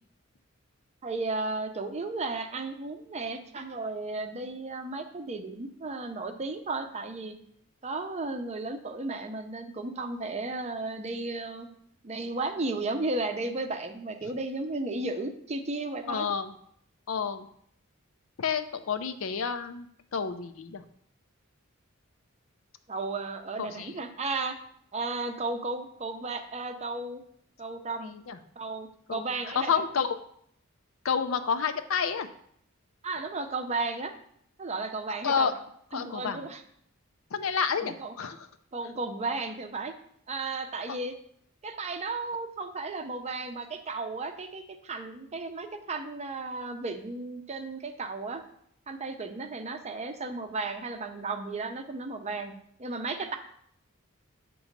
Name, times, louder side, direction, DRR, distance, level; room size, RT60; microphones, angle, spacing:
voice 1, 1.0-7.3 7.8-11.7 12.0-16.3 22.9-24.5 24.9-27.2 27.6-28.1 28.6-29.8 33.0-34.1 34.6-35.5 35.9-36.6 37.8-38.1 38.7-39.9 40.3-41.2 41.6-48.4 48.9-52.5 52.8-53.4, right 3 dB, 30° right, 6 dB, 0.6 m, -34 dB
voice 2, 16.1-16.5 17.1-17.5 18.4-19.9 20.1-20.8 23.6-23.9 28.0-28.4 29.1-29.2 29.5-30.2 31.0-32.3 35.2-35.5 35.9-36.4 37.3-38.4 40.9-41.0, left 6 dB, 70° left, 9 dB, 0.5 m, -29 dB
8.2 x 3.0 x 5.2 m, 0.67 s
head